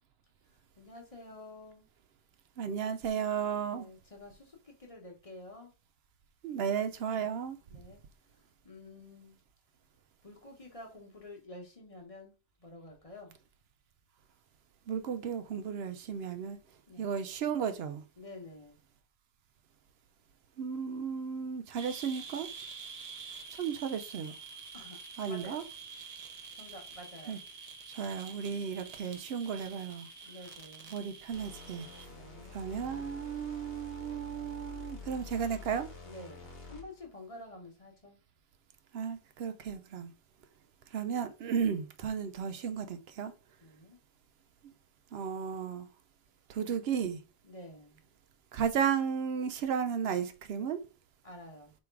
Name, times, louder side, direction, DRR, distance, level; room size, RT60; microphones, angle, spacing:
voice 1, 0.5-1.9 3.7-5.7 7.1-7.3 7.7-9.4 10.2-13.4 16.9-17.1 18.2-18.8 24.7-25.0 25.3-25.6 26.5-27.4 30.2-30.9 32.1-32.6 36.0-38.2 43.6-44.0 47.4-48.0 51.2-51.7, left 2 dB, 35° left, 1.1 m, -50 dB
voice 2, 2.6-3.9 6.4-7.6 14.9-16.6 17.0-18.0 20.6-22.5 23.6-24.3 25.2-25.6 27.3-27.4 27.9-30.1 30.9-31.9 32.5-35.9 38.9-40.1 40.9-43.3 45.1-45.9 46.5-47.2 48.5-50.8, right 7 dB, 75° right, 0.8 m, -34 dB
sound 1, 21.8-32.1, right 5 dB, 45° right, 0.6 m, -47 dB
sound 2, 31.3-37.1, left 3 dB, 70° left, 1.1 m, -47 dB
3.5 x 3.0 x 4.5 m
omnidirectional pair, 1.1 m